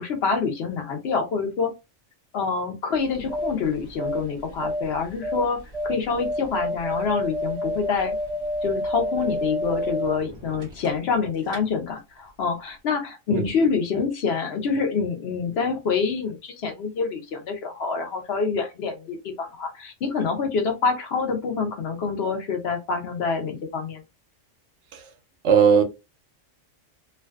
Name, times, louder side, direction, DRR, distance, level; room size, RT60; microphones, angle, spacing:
voice 1, 0.0-1.7 2.3-5.6 5.8-8.2 8.6-24.0, left 5 dB, 65° left, 0.8 m, -26 dB
sound 1, 3.0-11.2 11.5-11.6, left 1 dB, 25° right, 1.2 m, -30 dB
voice 2, 25.4-25.8, right 7 dB, 70° right, 0.8 m, -18 dB
2.5 x 2.2 x 2.3 m
omnidirectional pair, 1.3 m